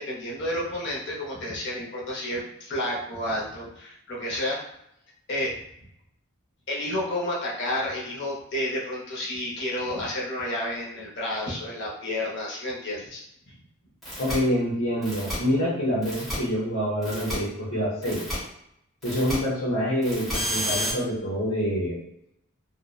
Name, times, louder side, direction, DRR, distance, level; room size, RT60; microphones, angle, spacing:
voice 1, 0.0-4.6 5.3-5.6 6.7-13.6, left 1 dB, 55° left, -4 dB, 0.7 m, -31 dB
sound 1, 14.0-14.3 15.0-15.3 16.0-16.3 17.0-17.3 18.0-18.3 19.0-19.3 20.0-20.9, equal, ahead, 0.8 m, -30 dB
voice 2, 14.2-18.4 19.0-22.0, equal, 90° left, -8 dB, 0.8 m, -26 dB
2.7 x 2.0 x 2.3 m, 0.76 s
head